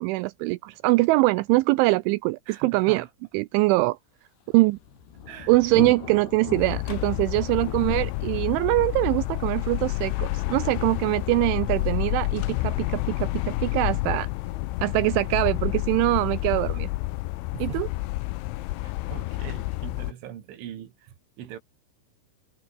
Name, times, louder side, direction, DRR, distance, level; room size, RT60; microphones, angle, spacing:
voice 1, 0.0-3.1 3.3-4.0 4.5-4.8 5.5-14.3 14.8-16.9 17.6-17.9, right 21 dB, 85° right, 2.8 m, -23 dB
voice 2, 2.5-3.1 5.3-5.5 17.5-17.8 18.8-21.6, right 11 dB, 70° right, 4.8 m, -41 dB
Thunder, 4.4-15.9, left 7 dB, 55° left, 5.4 m, -42 dB
sound 1, 6.6-20.1, left 20 dB, 85° left, 3.0 m, -29 dB
omnidirectional pair, 5.9 m